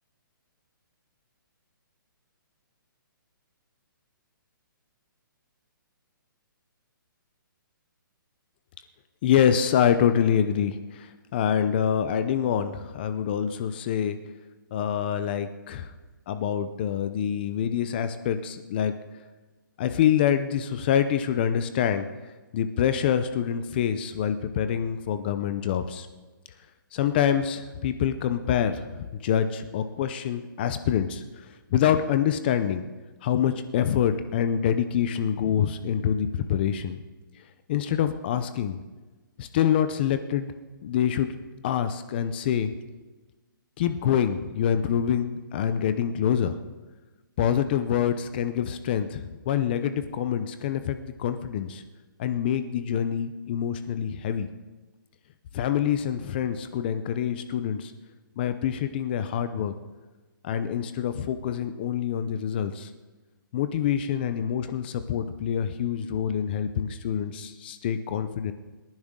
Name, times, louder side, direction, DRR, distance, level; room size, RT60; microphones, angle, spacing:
voice 1, 9.2-14.2 14.7-15.9 16.3-18.9 19.8-22.1 22.5-26.1 26.9-31.2 31.7-32.8 33.2-37.0 37.7-38.8 39.4-40.5 40.8-41.3 41.6-42.7 43.8-46.6 47.4-51.8 52.2-54.5 55.5-57.9 58.4-59.7 60.4-62.9 63.5-68.5, left 9 dB, 25° left, 10 dB, 0.6 m, -26 dB
25.0 x 10.5 x 3.7 m, 1.2 s
hypercardioid pair, 165°, 12 cm